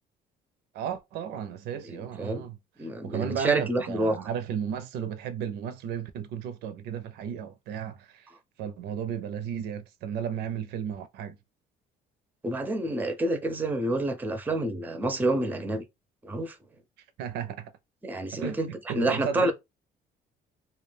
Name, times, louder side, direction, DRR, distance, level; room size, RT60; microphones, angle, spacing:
voice 1, 0.7-2.6 3.0-8.3 8.6-11.4 17.2-17.7 18.3-19.5, right 8 dB, 80° right, 0.5 m, -34 dB
voice 2, 1.9-2.5 2.8-4.3 12.4-15.8 16.2-16.6 18.0-18.7 18.9-19.5, right 2 dB, 10° right, 0.5 m, -28 dB
2.3 x 2.1 x 3.2 m
cardioid pair, 110°, 17 cm